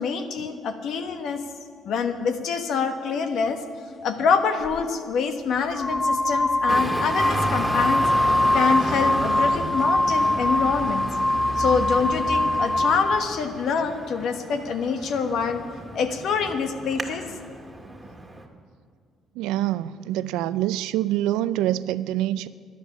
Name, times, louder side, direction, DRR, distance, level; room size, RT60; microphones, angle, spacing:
voice 1, 0.0-1.4 1.8-3.6 4.0-8.0 8.5-11.0 11.6-15.6 15.9-17.2, left 5 dB, 70° left, 7 dB, 1.3 m, -26 dB
sound 1, 4.6-4.8 5.6-13.3, left 1 dB, 20° left, 0.3 m, -23 dB
Traffic noise roadway noise, 6.7-18.4, right 2 dB, 10° right, 2.0 m, -33 dB
voice 2, 19.3-22.5, right 13 dB, 85° right, 16 dB, 0.4 m, -25 dB
12.5 x 11.0 x 8.7 m, 2.1 s
supercardioid pair, 80°, 0 cm